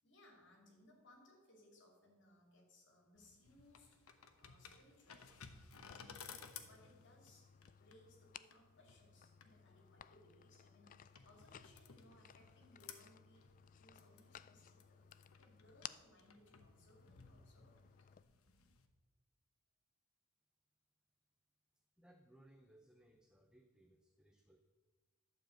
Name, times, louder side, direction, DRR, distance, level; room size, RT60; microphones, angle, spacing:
voice 1, 0.0-7.5 7.8-13.5 13.8-15.1 15.4-17.9, left 1 dB, 60° left, 0 dB, 2.9 m, -67 dB
sound 1, 3.2-18.9, left 6 dB, 85° left, 1.0 m, -59 dB
sound 2, 5.7-18.2, left 9 dB, 40° left, 0.3 m, -59 dB
voice 2, 22.0-24.7, right 1 dB, 5° right, 4 dB, 0.6 m, -66 dB
11.5 x 5.1 x 7.8 m, 1.3 s
head